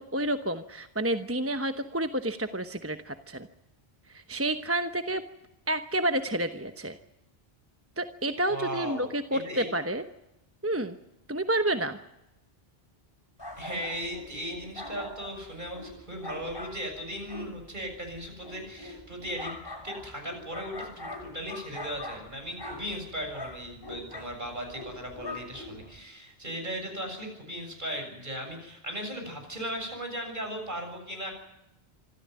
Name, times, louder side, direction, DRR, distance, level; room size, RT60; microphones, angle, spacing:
voice 1, 0.0-3.5 4.1-5.2 5.7-7.0 8.0-10.0 10.6-11.0 11.3-12.0, right 1 dB, 15° right, 8 dB, 0.9 m, -29 dB
voice 2, 8.5-9.7 13.6-31.3, equal, 50° right, 3 dB, 7.3 m, -37 dB
sound 1, 13.4-26.0, left 1 dB, 25° left, 3.5 m, -43 dB
26.0 x 14.0 x 9.4 m, 0.90 s
omnidirectional pair, 1.0 m